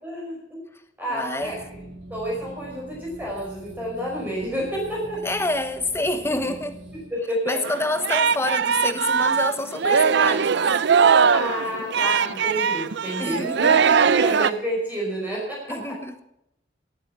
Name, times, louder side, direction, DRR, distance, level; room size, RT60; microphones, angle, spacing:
voice 1, 0.0-0.4 1.0-1.6 2.1-5.2 6.4-6.5 6.9-7.6 11.3-13.7 14.1-16.0, equal, 10° right, -4 dB, 5.4 m, -29 dB
voice 2, 1.1-1.5 5.2-6.7 7.5-10.7 13.2-14.2 15.7-16.2, left 2 dB, 15° left, 9 dB, 1.1 m, -28 dB
sound 1, 1.4-7.1, right 1 dB, 85° right, 4.7 m, -42 dB
Singing, 7.6-14.5, right 6 dB, 65° right, 0.6 m, -20 dB
18.5 x 9.5 x 5.7 m, 0.81 s
head